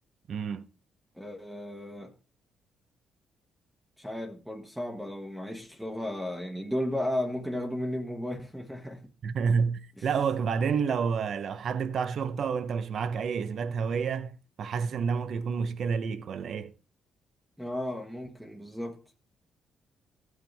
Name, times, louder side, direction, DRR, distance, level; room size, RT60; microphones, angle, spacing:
voice 1, 0.3-0.6 9.2-16.7, right 6 dB, 60° right, 0.7 m, -29 dB
voice 2, 1.1-2.1 4.0-9.1 10.0-10.1 17.6-19.0, left 1 dB, ahead, 1.2 m, -34 dB
14.5 x 6.4 x 3.4 m
cardioid pair, 90°, 0 cm